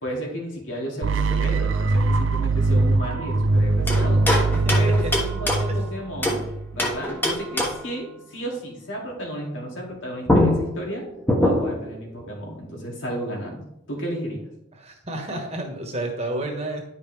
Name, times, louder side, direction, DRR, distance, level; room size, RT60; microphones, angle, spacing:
voice 1, 0.0-4.3 4.7-6.4 6.7-11.0 11.4-14.5, right 1 dB, 90° left, -1 dB, 2.4 m, -33 dB
sound 1, 1.0-7.0, right 3 dB, 90° right, 0.5 m, -22 dB
sound 2, 3.9-6.5 6.8-8.0 9.9-10.0 10.3-11.9, left 1 dB, 10° left, 1.0 m, -24 dB
voice 2, 4.5-5.1 5.7-5.8 14.7-16.8, right 1 dB, 35° right, 2 dB, 1.4 m, -31 dB
10.0 x 5.4 x 3.4 m, 0.80 s
head